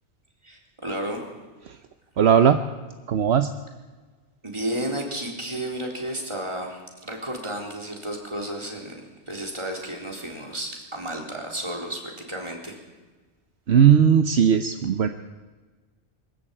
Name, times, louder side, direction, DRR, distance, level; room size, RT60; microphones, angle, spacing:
voice 1, 0.4-1.2 4.4-12.8, right 1 dB, 25° right, 0 dB, 3.8 m, -32 dB
voice 2, 2.2-2.6 3.1-3.5 13.7-15.1, right 8 dB, 70° right, 8 dB, 1.1 m, -18 dB
23.0 x 13.5 x 8.8 m, 1.3 s
omnidirectional pair, 1.2 m